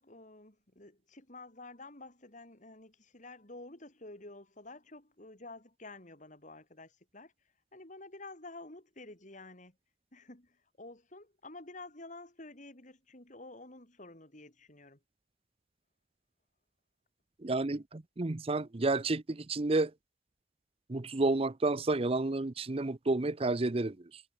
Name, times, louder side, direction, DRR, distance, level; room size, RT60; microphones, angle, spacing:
voice 1, 0.0-7.3 7.7-9.8 10.1-15.0, left 2 dB, 40° left, 3.7 m, -50 dB
voice 2, 17.4-19.9 20.9-24.2, right 2 dB, 30° right, 0.7 m, -30 dB
head